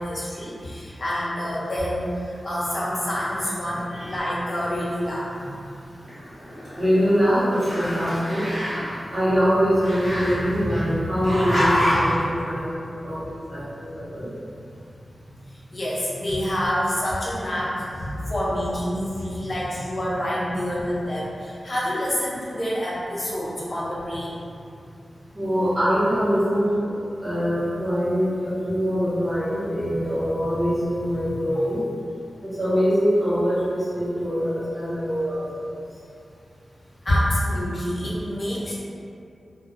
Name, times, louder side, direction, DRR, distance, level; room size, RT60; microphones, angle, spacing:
voice 1, 0.0-5.3 15.5-24.5 37.0-38.7, equal, 40° left, -7 dB, 0.6 m, -28 dB
Growling, 6.0-7.2 7.5-9.0 9.8-10.8 11.2-12.2, equal, 75° right, 1.4 m, -26 dB
voice 2, 6.8-8.4 9.1-12.7 13.0-13.2 13.5-14.3 25.3-26.8 27.2-31.8 32.6-35.7, equal, 20° right, -13 dB, 1.1 m, -23 dB
2.5 x 2.2 x 2.5 m, 2.5 s
wide cardioid pair, 115°, 0 cm